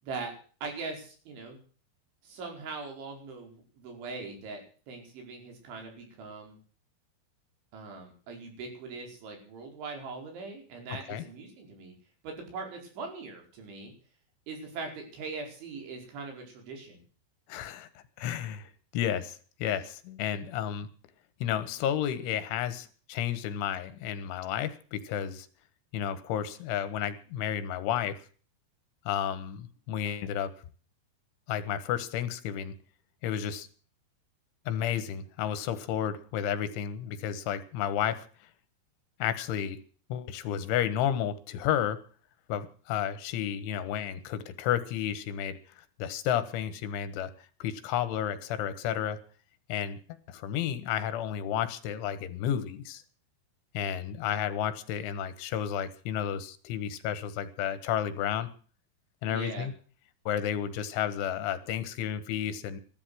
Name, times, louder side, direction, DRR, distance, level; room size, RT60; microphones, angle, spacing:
voice 1, 0.6-1.6 2.2-6.6 7.7-11.9 12.2-13.9 14.5-17.0 59.3-59.7, right 4 dB, 75° right, 3 dB, 7.1 m, -41 dB
voice 2, 17.5-17.9 18.2-20.9 21.4-25.5 25.9-28.2 29.1-30.5 31.5-32.8 33.2-33.7 34.7-38.3 39.2-39.8 40.1-42.0 42.5-47.3 47.6-49.2 49.7-50.0 50.3-53.0 53.8-58.5 59.2-59.7 60.3-62.8, left 10 dB, 85° left, 12 dB, 3.9 m, -32 dB
15.0 x 13.0 x 6.3 m, 0.42 s
omnidirectional pair, 5.4 m